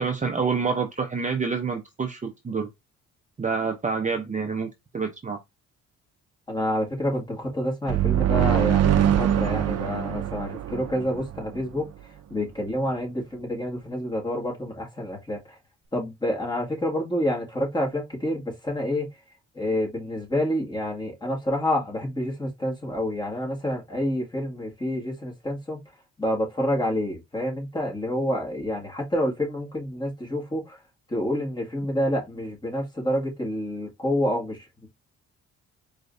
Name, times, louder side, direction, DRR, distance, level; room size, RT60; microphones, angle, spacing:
voice 1, 0.0-2.7 3.4-4.7 4.9-5.4, right 5 dB, 25° right, 0.8 m, -27 dB
voice 2, 6.5-11.9 12.3-15.6 15.9-19.1 19.5-25.8 26.2-30.8 31.1-34.7, left 1 dB, 15° left, 2.1 m, -28 dB
sound 1, 7.9-11.6, right 11 dB, 55° right, 0.7 m, -23 dB
4.5 x 3.3 x 2.7 m
cardioid pair, 90°, 30 cm